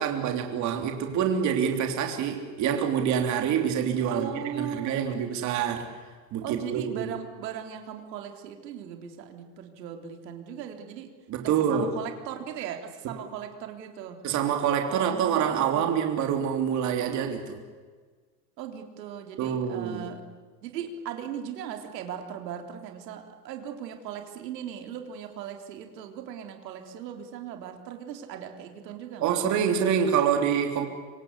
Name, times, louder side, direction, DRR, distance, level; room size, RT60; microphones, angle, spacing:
voice 1, 0.0-5.9 6.3-7.1 11.3-11.9 14.2-17.6 19.4-20.1 29.2-30.9, right 8 dB, 35° right, 4 dB, 3.4 m, -26 dB
voice 2, 4.0-5.3 6.4-11.2 11.4-14.3 14.9-16.0 18.6-20.3 20.6-29.3, right 9 dB, 85° right, 5 dB, 3.8 m, -38 dB
26.0 x 25.0 x 8.3 m, 1.5 s
supercardioid pair, 155°, 48 cm